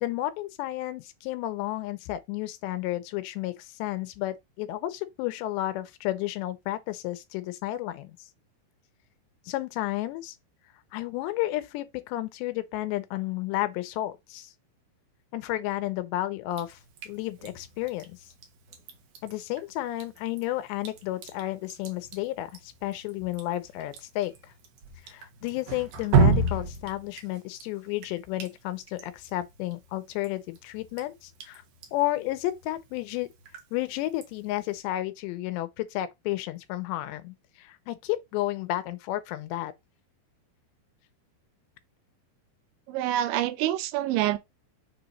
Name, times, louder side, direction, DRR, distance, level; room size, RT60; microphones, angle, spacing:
voice 1, 0.0-8.2 9.5-10.4 10.9-14.5 15.3-16.8 17.1-18.2 19.2-24.5 25.0-31.6 31.9-33.3 33.7-39.7, left 15 dB, 85° left, 2.7 m, -32 dB
Drip, 16.5-34.8, right 3 dB, 65° right, 2.0 m, -33 dB
voice 2, 42.9-44.4, right 13 dB, 90° right, 3.1 m, -26 dB
6.8 x 2.9 x 5.2 m
omnidirectional pair, 5.2 m